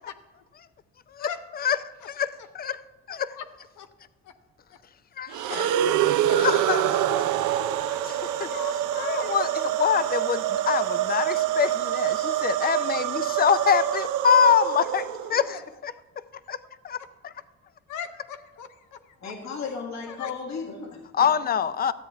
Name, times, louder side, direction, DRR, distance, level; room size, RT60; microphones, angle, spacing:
voice 1, 1.2-1.7 2.0-2.1 2.4-2.5 3.3-3.5 3.8-3.9 4.2-4.3 4.7-4.8 5.5-6.0 6.3-6.7 7.9-9.4 16.4-16.5 17.0-17.1 17.3-17.4 17.9-19.3 19.6-19.7 20.1-20.3, left 7 dB, 85° left, 0.7 m, -40 dB
voice 2, 5.2-5.5 6.4-7.4 7.9-8.5 9.0-15.6 15.8-15.9 16.5-16.6 16.8-17.0 21.1-21.9, left 7 dB, 30° left, 0.4 m, -25 dB
sound 1, 5.3-15.5, right 11 dB, 85° right, 0.5 m, -26 dB
voice 3, 19.2-21.3, left 5 dB, 65° left, 1.6 m, -35 dB
13.0 x 8.0 x 3.4 m
cardioid pair, 90°, 30 cm